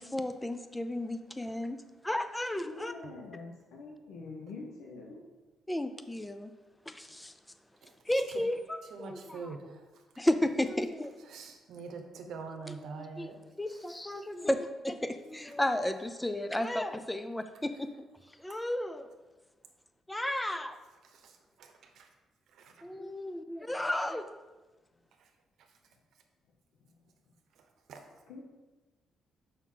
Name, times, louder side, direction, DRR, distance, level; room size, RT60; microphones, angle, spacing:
voice 1, 0.0-1.8 2.0-2.9 5.7-6.5 6.9-7.3 8.1-9.6 10.2-11.1 12.7-13.3 13.6-17.9 18.4-19.1 20.1-20.8 22.8-24.3, left 1 dB, 10° left, 9 dB, 0.5 m, -33 dB
voice 2, 2.6-5.2 14.4-14.5 22.6-22.9 26.8-27.3 28.3-28.4, left 3 dB, 90° left, -1 dB, 0.8 m, -46 dB
voice 3, 8.9-9.8 11.3-13.4 21.1-22.1 22.5-22.8 25.2-25.3 27.9-28.1, right 4 dB, 75° right, 4 dB, 0.9 m, -45 dB
6.4 x 5.4 x 3.8 m, 1.2 s
cardioid pair, 90°, 0 cm